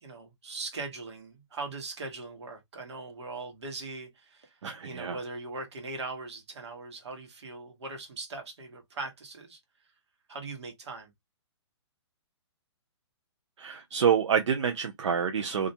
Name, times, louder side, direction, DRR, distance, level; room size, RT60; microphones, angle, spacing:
voice 1, 0.0-9.6 10.3-11.1, right 3 dB, 70° right, 1.1 m, -40 dB
voice 2, 4.6-5.2 13.6-15.7, right 7 dB, 85° right, 0.5 m, -27 dB
2.4 x 2.1 x 2.7 m
hypercardioid pair, 165°, 15 cm